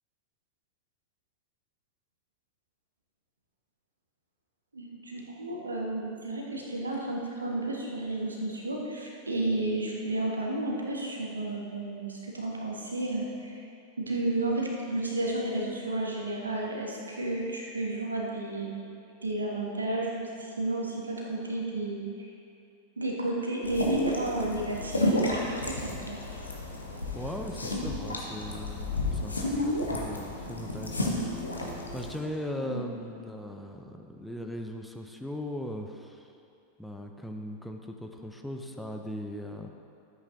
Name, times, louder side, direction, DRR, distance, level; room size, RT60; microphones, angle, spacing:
voice 1, 4.7-13.6 14.0-18.8 19.2-22.3 23.0-25.2 25.5-26.2 32.5-32.9, right 2 dB, 75° right, -2 dB, 1.4 m, -32 dB
sound 1, 23.6-32.2, left 1 dB, 80° left, 1.1 m, -31 dB
voice 2, 27.1-36.3 36.8-39.7, left 1 dB, ahead, 2 dB, 0.6 m, -39 dB
13.5 x 8.2 x 2.7 m, 2.7 s
figure-of-eight pair, 90°, 0 cm